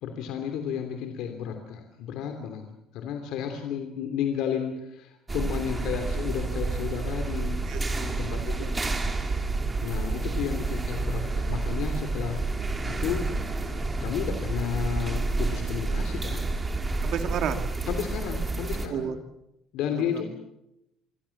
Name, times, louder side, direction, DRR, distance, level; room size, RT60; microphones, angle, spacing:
voice 1, 0.0-2.7 2.9-7.6 8.2-9.1 9.8-12.4 12.9-13.3 14.0-16.4 17.9-19.1 19.7-20.3, left 8 dB, 65° left, 5 dB, 3.0 m, -32 dB
sound 1, 5.3-18.9, right 3 dB, 15° right, 2.2 m, -29 dB
voice 2, 7.7-8.7 17.0-17.6 18.9-19.2 19.9-20.2, right 8 dB, 45° right, 7 dB, 2.4 m, -33 dB
26.0 x 23.5 x 7.2 m, 0.86 s
cardioid pair, 170°, 0 cm